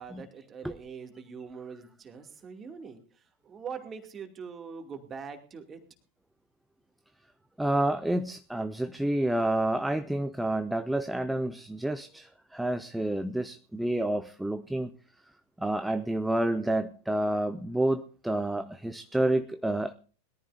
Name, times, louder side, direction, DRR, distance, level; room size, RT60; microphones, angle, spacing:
voice 1, 0.0-3.0 3.4-5.8, right 6 dB, 20° right, 5 dB, 2.5 m, -42 dB
voice 2, 7.6-14.9 15.6-19.9, right 1 dB, 5° right, 10 dB, 0.6 m, -29 dB
21.5 x 14.0 x 2.6 m, 0.39 s
figure-of-eight pair, 90°, 0 cm